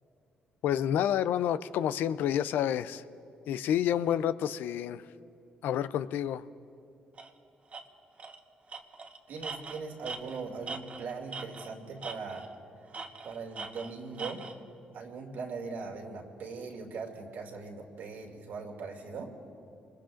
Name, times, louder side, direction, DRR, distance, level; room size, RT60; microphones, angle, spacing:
voice 1, 0.6-3.0 3.5-5.0 5.6-6.4, left 10 dB, 80° left, 15 dB, 0.4 m, -29 dB
Tools, 7.2-7.3 7.7-7.8 8.2-8.4 8.7-11.7 12.0-12.5 12.9-14.6, right 4 dB, 45° right, 1.2 m, -41 dB
voice 2, 9.3-12.5 13.2-14.4 14.9-19.3, right 4 dB, 75° right, 1 dB, 2.4 m, -40 dB
26.0 x 21.5 x 2.6 m, 2.6 s
supercardioid pair, 65°, 3 cm